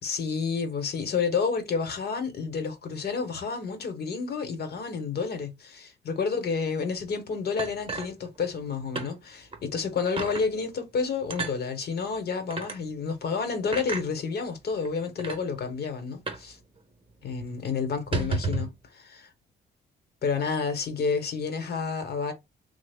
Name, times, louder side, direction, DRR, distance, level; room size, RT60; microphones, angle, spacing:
voice 1, 0.0-16.6 17.2-18.7 20.2-22.3, left 5 dB, 60° left, 1.0 m, -30 dB
sound 1, 7.6-8.7 8.9-9.1 9.5-9.6 10.2-10.5 11.3-11.6 12.5-12.8 13.7-14.1 14.8-14.9 15.2-15.4 16.3-16.5 16.8-16.9 17.2-17.4 17.9-18.7, right 4 dB, 30° right, 0.8 m, -32 dB
3.3 x 2.0 x 3.4 m
cardioid pair, 100°, 19 cm